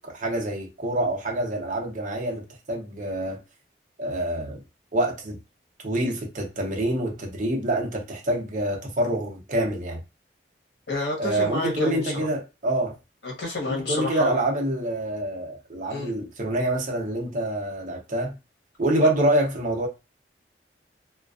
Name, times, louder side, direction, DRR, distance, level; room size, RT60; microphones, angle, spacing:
voice 1, 0.0-3.4 4.0-4.6 4.9-5.4 5.8-10.0 11.2-13.0 13.7-18.4 18.8-19.9, right 1 dB, 45° right, 0.7 m, -26 dB
voice 2, 10.9-12.3 13.2-14.4 15.9-16.1, left 2 dB, 75° left, 0.9 m, -29 dB
2.3 x 2.2 x 2.3 m
head